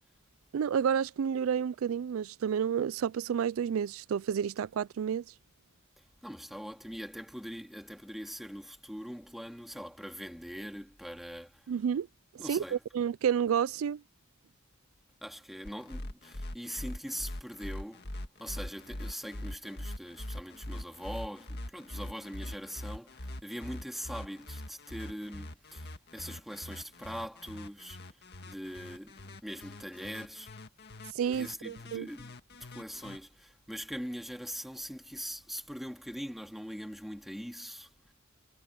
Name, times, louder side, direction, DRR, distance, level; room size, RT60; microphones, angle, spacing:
voice 1, 0.5-5.2 11.7-12.1 12.3-14.0 31.1-32.1, right 8 dB, 85° right, 0.4 m, -30 dB
voice 2, 6.0-11.7 12.4-12.8 15.2-18.1 18.4-28.0 28.5-30.5 31.3-38.1, equal, ahead, 2.9 m, -42 dB
sound 1, 15.6-33.2, left 1 dB, 55° left, 1.8 m, -42 dB
head